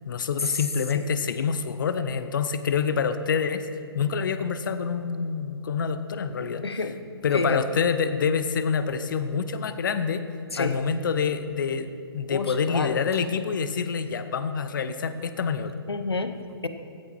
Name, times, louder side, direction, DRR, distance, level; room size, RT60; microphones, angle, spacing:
voice 1, 0.1-3.7 3.9-6.6 7.2-10.2 10.6-15.7, left 6 dB, 55° left, 12 dB, 0.6 m, -27 dB
voice 2, 6.6-7.1 7.3-7.6 10.5-10.8 12.3-13.3 15.9-16.7, left 3 dB, 85° left, 9 dB, 0.8 m, -29 dB
15.5 x 7.2 x 4.5 m, 2.5 s
figure-of-eight pair, 130°, 13 cm